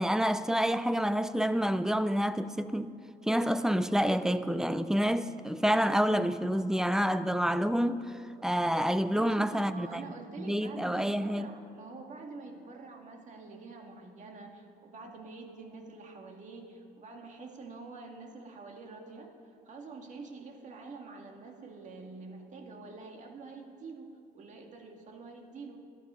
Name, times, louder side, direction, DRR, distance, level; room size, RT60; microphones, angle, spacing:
voice 1, 0.0-2.9 3.3-8.1 8.4-10.0 10.5-11.5, equal, 5° right, 0.5 m, -28 dB
voice 2, 9.1-19.3 19.7-25.8, right 3 dB, 45° right, 1.9 m, -46 dB
13.5 x 12.0 x 5.6 m
cardioid pair, 110°, 17 cm